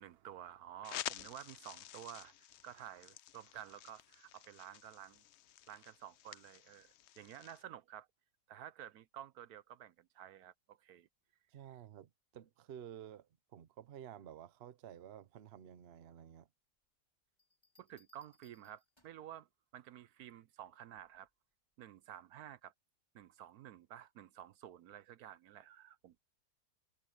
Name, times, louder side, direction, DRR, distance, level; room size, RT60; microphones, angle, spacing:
voice 1, 0.0-5.2 5.7-8.1 8.5-11.1 17.8-19.5 19.7-21.3 21.8-22.7 23.1-26.2, right 11 dB, 70° right, 1.1 m, -52 dB
sound 1, 0.8-7.6, left 12 dB, 75° left, 0.6 m, -50 dB
voice 2, 11.5-16.5, right 10 dB, 50° right, 0.8 m, -52 dB
sound 2, 17.4-19.3 21.0-21.3, left 2 dB, 15° left, 5.6 m, -72 dB
omnidirectional pair, 1.7 m